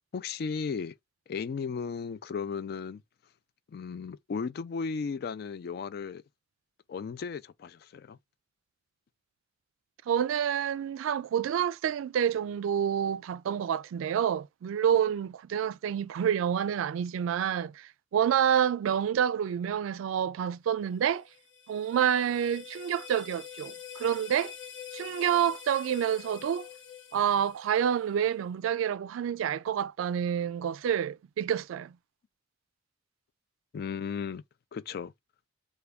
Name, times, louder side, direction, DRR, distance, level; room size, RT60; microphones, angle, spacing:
voice 1, 0.1-0.9 1.3-3.0 3.7-6.2 6.9-8.2 33.7-34.4 34.7-35.1, left 5 dB, 50° left, 0.3 m, -35 dB
voice 2, 10.1-21.2 21.7-24.5 24.9-26.7 27.1-31.9, right 9 dB, 90° right, 0.3 m, -28 dB
sound 1, 21.0-28.1, left 8 dB, 70° left, 0.8 m, -46 dB
3.4 x 2.2 x 3.4 m
head